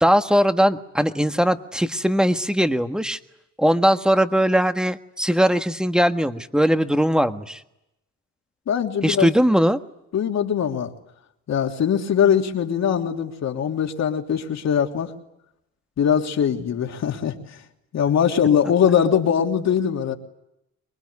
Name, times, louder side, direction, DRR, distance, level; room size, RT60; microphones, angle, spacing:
voice 1, 0.0-3.2 3.6-7.6 9.0-9.8, equal, 5° right, 8 dB, 1.5 m, -20 dB
voice 2, 8.7-9.3 10.1-10.9 11.5-15.1 16.0-17.4 17.9-20.1, left 8 dB, 60° left, 3 dB, 3.1 m, -21 dB
25.0 x 22.0 x 9.7 m, 0.85 s
cardioid pair, 90°, 30 cm